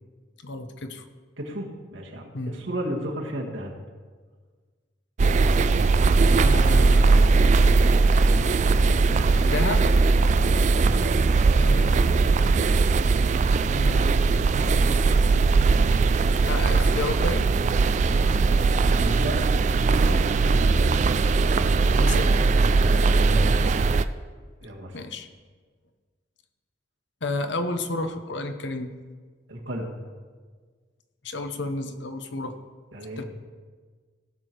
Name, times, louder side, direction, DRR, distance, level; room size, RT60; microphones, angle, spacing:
voice 1, 0.4-1.0 2.3-2.6 6.3-7.3 9.4-9.8 11.6-12.1 13.7-15.5 16.5-17.5 22.0-22.3 24.9-25.3 27.2-28.9 31.2-32.5 33.2-33.3, left 2 dB, 70° left, 8 dB, 0.9 m, -32 dB
voice 2, 1.4-3.7 17.8-18.7 18.9-19.4 19.7-20.2 20.5-20.9 22.9-23.7 24.6-25.0 29.5-30.0 32.9-33.2, right 1 dB, 85° right, -1 dB, 1.8 m, -34 dB
sound 1, 5.2-24.0, right 3 dB, 40° right, 0.3 m, -20 dB
17.0 x 6.7 x 4.6 m, 1.5 s
head